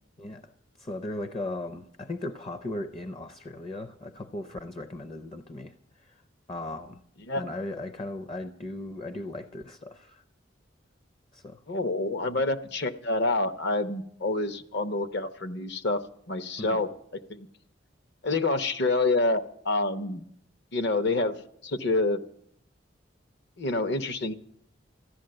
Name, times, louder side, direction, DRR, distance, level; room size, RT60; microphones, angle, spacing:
voice 1, 0.2-0.5 0.8-5.7 6.1-6.2 6.5-7.0 7.3-10.2 11.3-11.6 12.2-12.4 16.6-16.8, left 2 dB, 30° left, 0.5 m, -37 dB
voice 2, 11.7-16.9 17.3-17.5 18.2-20.2 20.7-21.4 21.6-22.2 23.6-24.3, left 2 dB, 60° left, 0.9 m, -27 dB
14.5 x 11.0 x 7.7 m
head